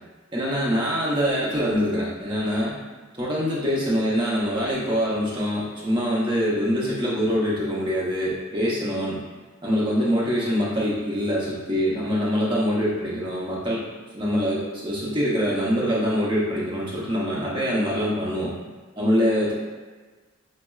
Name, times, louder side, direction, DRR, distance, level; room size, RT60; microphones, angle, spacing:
voice 1, 0.3-2.8 3.2-9.2 9.6-13.8 14.1-18.5 19.0-19.5, equal, 25° right, -6 dB, 0.7 m, -24 dB
5.7 x 2.0 x 2.3 m, 1.3 s
head